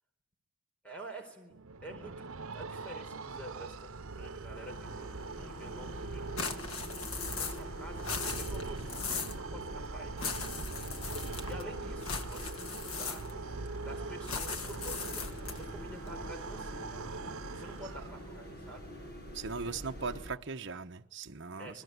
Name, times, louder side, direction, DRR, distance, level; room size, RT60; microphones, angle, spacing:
voice 1, 0.8-6.3 7.4-10.9 11.5-13.3 13.8-17.0 17.5-18.9 21.6-21.8, right 1 dB, 5° left, 4.5 m, -49 dB
sound 1, 1.5-18.5, right 3 dB, 85° right, 1.0 m, -42 dB
sound 2, 4.1-20.3, equal, 45° left, 6.8 m, -46 dB
sound 3, 6.4-7.7 8.0-9.4 10.2-11.6 12.0-13.5 14.2-15.7, left 5 dB, 85° left, 1.7 m, -38 dB
voice 2, 19.3-21.8, right 4 dB, 55° right, 1.2 m, -39 dB
28.0 x 21.0 x 9.6 m
head